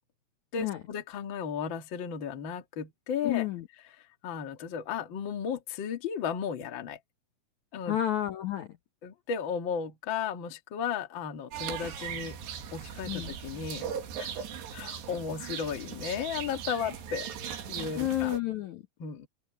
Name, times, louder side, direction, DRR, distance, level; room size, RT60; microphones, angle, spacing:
voice 1, 0.5-3.5 4.0-7.0 7.7-8.0 9.0-12.4 12.7-13.9 14.2-14.5 14.7-17.3 17.7-18.3 19.0-19.3, left 7 dB, 45° left, 1.6 m, -34 dB
voice 2, 3.2-3.7 7.9-8.8 13.1-13.3 18.0-18.8, left 13 dB, 65° left, 1.9 m, -30 dB
sound 1, 11.5-18.4, right 8 dB, 80° right, 4.4 m, -39 dB
omnidirectional pair, 4.8 m